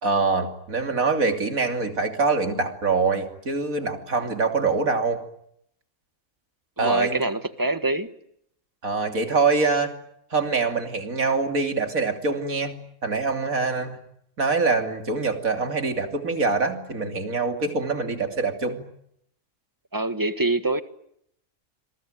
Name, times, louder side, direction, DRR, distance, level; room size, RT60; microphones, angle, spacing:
voice 1, 0.0-5.2 6.8-7.2 8.8-9.9 10.3-12.8 13.0-14.0 14.4-18.8, right 4 dB, 85° right, 6 dB, 3.4 m, -24 dB
voice 2, 6.8-8.1 19.9-20.8, right 2 dB, 15° right, 11 dB, 1.3 m, -25 dB
27.5 x 22.5 x 9.1 m, 0.73 s
omnidirectional pair, 1.4 m